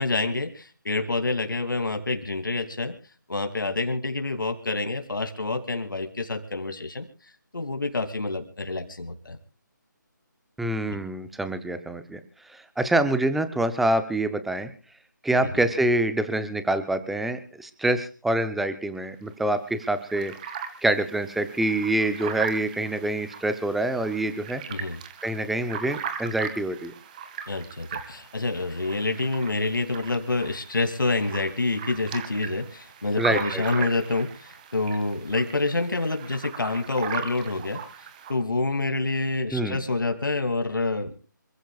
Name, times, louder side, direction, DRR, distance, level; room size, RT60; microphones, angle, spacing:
voice 1, 0.0-2.9 3.3-7.1 7.5-9.4 10.9-11.0 15.4-15.6 24.7-25.0 27.5-37.8 38.3-41.1, left 3 dB, 80° left, 6 dB, 2.8 m, -27 dB
voice 2, 10.6-12.2 12.5-14.7 15.2-20.3 20.8-24.6 25.2-26.9 33.2-33.9 39.5-39.8, right 1 dB, ahead, 11 dB, 0.7 m, -26 dB
sound 1, 19.0-19.1 19.5-19.6 19.8-38.3, right 7 dB, 25° right, 1.9 m, -39 dB
27.0 x 15.5 x 2.4 m, 0.36 s
figure-of-eight pair, 160°, 11 cm